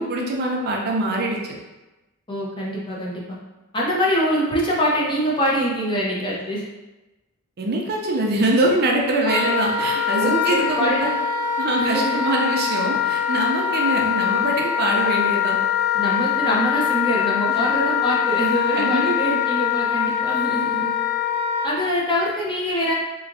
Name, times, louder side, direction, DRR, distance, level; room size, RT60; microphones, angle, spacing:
voice 1, 0.0-1.4 7.6-11.2 11.6-15.6 18.7-19.4, right 1 dB, 45° right, 0 dB, 0.5 m, -23 dB
voice 2, 2.3-3.2 3.7-6.6 10.2-11.0 11.8-12.2 15.9-20.9 21.6-22.9, equal, 20° left, -4 dB, 0.6 m, -24 dB
Wind instrument woodwind instrument, 9.2-21.7, left 9 dB, 75° left, 0.5 m, -23 dB
3.3 x 2.9 x 2.6 m, 1.1 s
head